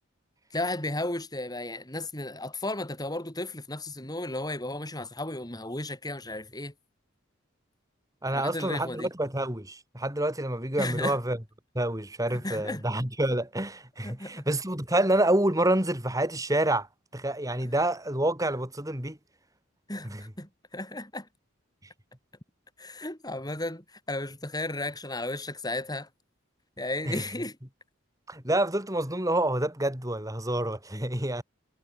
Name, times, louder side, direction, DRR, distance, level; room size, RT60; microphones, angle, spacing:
voice 1, 0.5-6.7 8.2-9.1 10.8-11.2 12.3-12.8 14.0-14.4 19.9-21.3 22.8-26.1 26.8-27.6, left 2 dB, 20° left, 6.1 m, -34 dB
voice 2, 8.2-11.4 11.8-16.9 17.1-19.2 20.1-20.2 27.1-27.2 28.3-31.4, right 1 dB, 15° right, 5.4 m, -28 dB
head